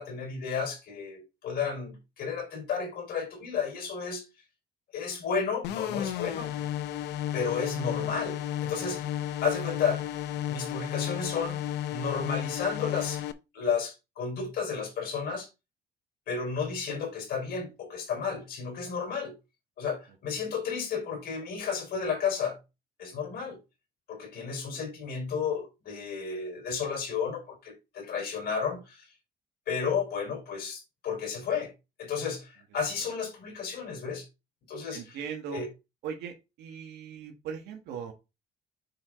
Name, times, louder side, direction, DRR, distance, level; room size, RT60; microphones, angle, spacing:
voice 1, 0.0-4.2 4.9-6.5 7.3-10.0 10.5-11.6 11.9-13.2 13.5-15.5 16.3-19.3 19.8-22.6 23.0-23.6 24.1-29.1 29.7-31.7 32.0-34.3 34.7-35.2 35.5-35.7, left 6 dB, 65° left, 4.1 m, -32 dB
sound 1, 5.6-13.3, left 11 dB, 85° left, 0.7 m, -33 dB
voice 2, 6.3-6.7 20.4-20.5 34.9-35.6 36.0-38.1, right 7 dB, 80° right, 1.7 m, -39 dB
7.1 x 5.1 x 3.8 m
cardioid pair, 110°, 17 cm